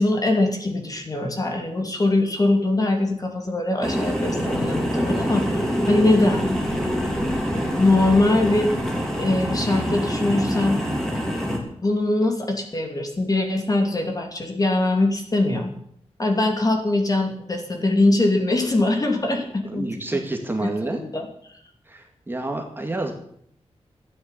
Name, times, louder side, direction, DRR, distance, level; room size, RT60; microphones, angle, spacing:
voice 1, 0.0-6.8 7.5-8.7 9.2-10.8 11.4-11.5 11.8-15.7 16.2-19.9 20.1-20.2 20.6-21.3, left 2 dB, 30° left, 3 dB, 2.8 m, -22 dB
sound 1, 3.8-11.6, equal, 5° left, 3.1 m, -25 dB
voice 2, 19.7-21.0 21.9-23.1, right 2 dB, 20° right, 3 dB, 2.0 m, -28 dB
13.5 x 9.6 x 8.4 m, 0.67 s
wide cardioid pair, 145°, 11 cm